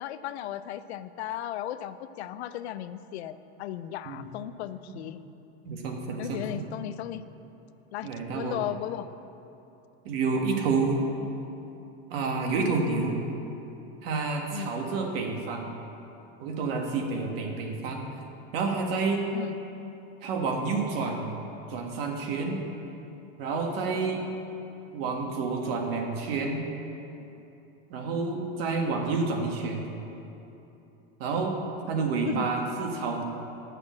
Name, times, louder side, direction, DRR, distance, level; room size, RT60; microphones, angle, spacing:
voice 1, 0.0-5.2 6.2-7.2 7.9-9.1 14.5-14.8 19.3-19.6 32.3-32.5, left 11 dB, 90° left, 13 dB, 0.5 m, -36 dB
voice 2, 5.6-6.6 8.0-8.6 10.0-11.0 12.1-13.2 14.0-15.7 16.4-18.0 18.5-19.2 20.2-21.3 21.7-22.6 23.4-24.2 24.9-26.6 27.9-29.9 31.2-31.5 31.9-33.2, right 4 dB, 65° right, 2 dB, 1.6 m, -29 dB
9.6 x 6.6 x 7.4 m, 3.0 s
supercardioid pair, 155°, 32 cm